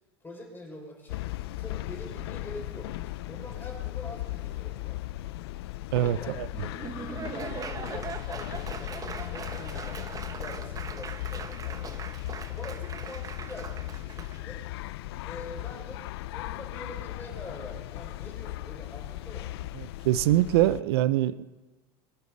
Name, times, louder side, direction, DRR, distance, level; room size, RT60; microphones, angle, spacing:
voice 1, 0.2-1.2 1.6-5.0 6.0-6.7 7.1-14.6 15.2-16.0 16.3-19.5, left 1 dB, 15° left, -1 dB, 5.9 m, -45 dB
sound 1, 1.1-20.8, left 17 dB, 80° left, 0.5 m, -37 dB
voice 2, 5.9-6.5 19.8-21.5, right 13 dB, 75° right, 16 dB, 0.6 m, -24 dB
Laughter / Applause, 6.5-14.4, right 6 dB, 25° right, 1.0 m, -40 dB
22.5 x 11.0 x 4.1 m, 1.2 s
hypercardioid pair, 100°, 13 cm